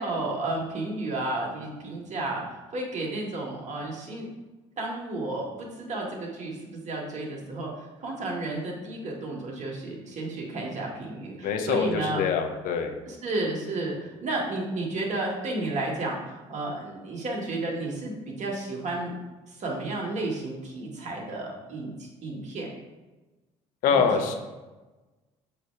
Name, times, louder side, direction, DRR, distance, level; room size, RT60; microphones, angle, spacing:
voice 1, 0.0-4.3 4.8-7.7 8.0-12.2 13.1-19.1 19.5-22.7 23.9-24.1, right 2 dB, 50° right, -2 dB, 2.0 m, -32 dB
voice 2, 11.4-12.9 23.8-24.3, left 6 dB, 70° left, 4 dB, 0.9 m, -24 dB
6.9 x 3.4 x 4.7 m, 1.2 s
hypercardioid pair, 65°, 15 cm